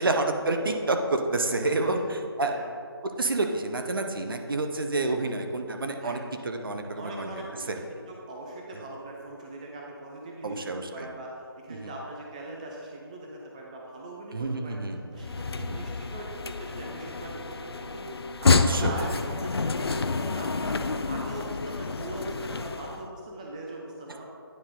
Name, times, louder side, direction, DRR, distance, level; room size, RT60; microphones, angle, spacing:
voice 1, 0.0-2.6 3.2-6.2 6.4-7.8 10.4-11.1 11.7-11.9 14.3-15.1 15.7-15.8 18.5-19.0, right 2 dB, 60° right, 4 dB, 0.7 m, -29 dB
voice 2, 1.6-2.0 2.5-2.7 6.0-6.2 7.0-10.6 10.9-11.3 11.6-14.8 15.1-24.2, right 1 dB, 15° right, -2 dB, 0.5 m, -40 dB
sound 1, 15.2-23.0, left 4 dB, 75° left, 0.4 m, -28 dB
9.5 x 4.4 x 3.7 m, 2.4 s
figure-of-eight pair, 160°, 13 cm